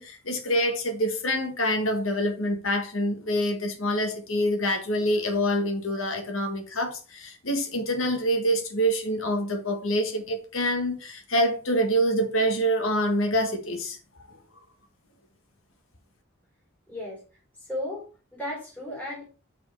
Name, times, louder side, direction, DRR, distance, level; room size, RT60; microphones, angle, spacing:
voice 1, 0.0-14.0 14.2-14.4, equal, 65° left, 1.7 m, -26 dB
voice 2, 16.9-17.2 17.6-19.2, left 1 dB, 5° left, 3.5 m, -35 dB
6.1 x 5.5 x 4.6 m
head